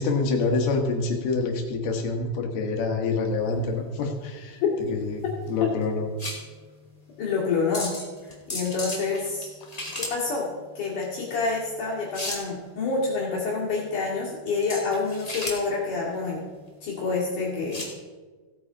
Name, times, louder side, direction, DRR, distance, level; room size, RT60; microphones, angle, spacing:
voice 1, 0.0-4.6 4.9-6.1 9.6-9.7, left 3 dB, 75° left, 3 dB, 3.2 m, -26 dB
sound 1, 3.3-18.0, left 1 dB, 15° left, 1.3 m, -38 dB
voice 2, 7.2-7.9 8.2-9.5 10.0-10.5 10.7-16.4 16.8-17.8, left 4 dB, 55° left, -6 dB, 3.5 m, -27 dB
16.5 x 8.9 x 3.9 m, 1.4 s
omnidirectional pair, 4.6 m